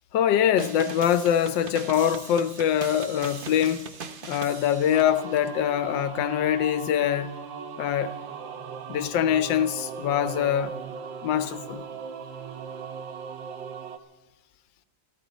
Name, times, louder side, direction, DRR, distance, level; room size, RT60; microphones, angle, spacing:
voice 1, 0.1-3.9 4.2-7.3 7.8-8.1 8.9-10.7 11.2-11.8, left 9 dB, 75° left, 1.3 m, -24 dB
sound 1, 0.6-5.5, right 5 dB, 55° right, 0.5 m, -40 dB
sound 2, 4.9-14.0, right 6 dB, 75° right, 1.6 m, -38 dB
27.5 x 11.0 x 4.1 m
omnidirectional pair, 2.1 m